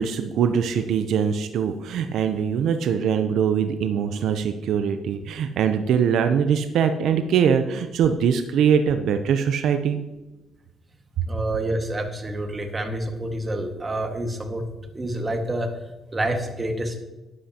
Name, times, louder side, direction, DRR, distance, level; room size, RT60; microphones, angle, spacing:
voice 1, 0.0-10.0 11.2-11.3, right 7 dB, 75° right, 8 dB, 0.6 m, -22 dB
voice 2, 11.3-14.7 14.9-15.7 16.1-17.0, right 1 dB, 25° right, 4 dB, 1.6 m, -28 dB
12.5 x 10.5 x 2.9 m, 1.1 s
cardioid pair, 90°, 0 cm